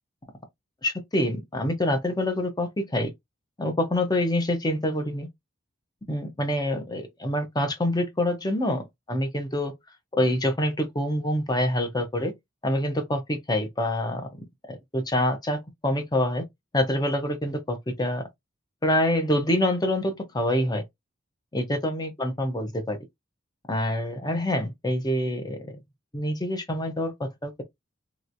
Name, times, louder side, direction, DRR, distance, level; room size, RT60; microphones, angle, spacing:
voice 1, 0.8-3.1 3.6-5.3 6.1-9.7 10.1-12.3 12.6-14.3 14.7-16.4 16.7-18.2 18.8-20.8 21.5-23.0 23.7-25.7 26.1-27.6, left 1 dB, 20° left, 0.7 m, -26 dB
3.1 x 3.0 x 2.5 m
head